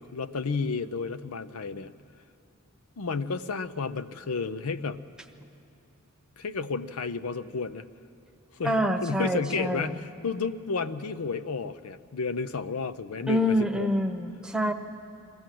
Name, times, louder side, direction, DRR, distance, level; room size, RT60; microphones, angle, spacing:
voice 1, 0.0-1.9 3.0-5.0 6.4-7.9 8.5-13.9, left 4 dB, 80° left, 12 dB, 0.6 m, -32 dB
voice 2, 8.6-9.9 13.3-14.7, equal, 5° right, 5 dB, 0.9 m, -26 dB
23.0 x 16.0 x 7.6 m, 2.7 s
head